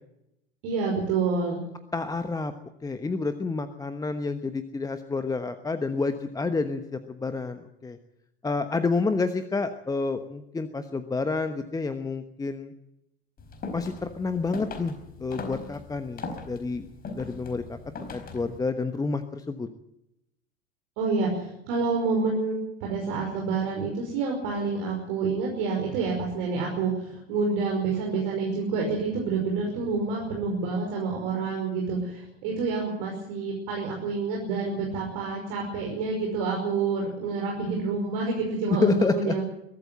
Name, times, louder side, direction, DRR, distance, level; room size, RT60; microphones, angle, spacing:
voice 1, 0.6-1.6 21.0-39.4, right 4 dB, 50° right, 0 dB, 5.4 m, -28 dB
voice 2, 1.9-2.5 2.8-8.0 8.4-12.7 13.7-17.8 18.1-19.7 38.8-39.4, left 3 dB, 10° left, 10 dB, 1.1 m, -29 dB
sound 1, 13.4-18.6, left 4 dB, 30° left, 4.4 m, -39 dB
22.5 x 13.0 x 9.0 m, 0.85 s
figure-of-eight pair, 80°, 32 cm